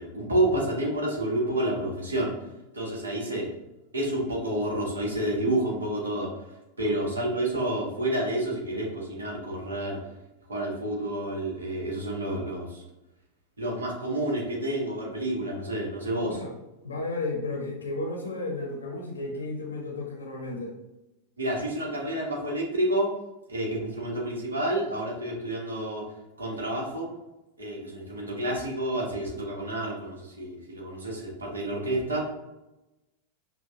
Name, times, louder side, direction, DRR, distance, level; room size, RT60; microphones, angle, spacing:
voice 1, 0.0-2.3 2.7-3.5 3.9-6.3 6.8-10.0 10.5-12.8 13.6-16.4 21.4-23.1 23.5-26.0 26.4-27.1 27.6-32.3, right 1 dB, 70° right, -2 dB, 1.1 m, -29 dB
voice 2, 16.2-16.5 16.8-20.8, left 2 dB, 75° left, 1 dB, 0.6 m, -33 dB
5.6 x 2.3 x 2.7 m, 0.98 s
figure-of-eight pair, 90°, 0 cm